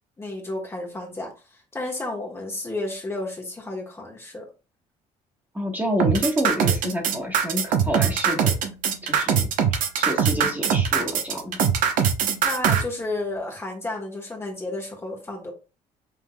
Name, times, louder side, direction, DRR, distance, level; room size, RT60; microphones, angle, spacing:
voice 1, 0.2-4.5 12.4-15.5, left 2 dB, 20° left, 0 dB, 1.0 m, -32 dB
voice 2, 5.5-8.5 9.0-11.7, equal, 15° right, 0 dB, 1.2 m, -28 dB
sound 1, 6.0-12.8, right 8 dB, 80° right, 0.8 m, -21 dB
5.7 x 3.3 x 2.2 m, 0.32 s
cardioid pair, 115°, 14 cm